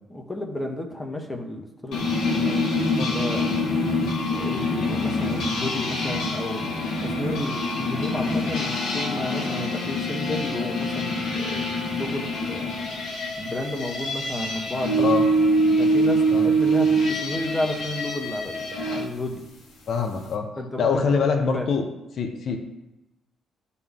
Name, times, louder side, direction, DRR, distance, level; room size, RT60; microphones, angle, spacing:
voice 1, 0.1-2.7 3.1-3.6 4.3-12.8 13.4-15.3 15.8-19.4 20.6-21.2 21.5-21.6, left 1 dB, 15° left, 3 dB, 1.4 m, -32 dB
sound 1, 1.9-19.1, equal, 80° left, 1.7 m, -25 dB
voice 2, 19.9-20.5 20.8-21.9 22.1-22.6, left 5 dB, 60° left, 4 dB, 1.1 m, -24 dB
12.0 x 4.3 x 3.7 m, 0.93 s
cardioid pair, 90°, 0 cm